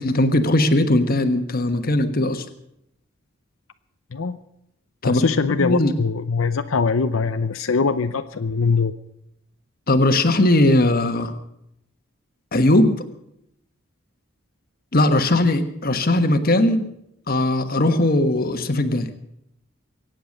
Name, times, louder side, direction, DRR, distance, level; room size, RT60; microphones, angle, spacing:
voice 1, 0.0-2.4 5.0-5.2 5.6-5.9 9.9-11.3 12.5-12.9 14.9-16.9 17.3-19.1, left 1 dB, 45° left, 8 dB, 1.4 m, -19 dB
voice 2, 5.0-8.9, left 4 dB, 90° left, 9 dB, 0.7 m, -22 dB
23.5 x 9.1 x 6.6 m, 0.78 s
head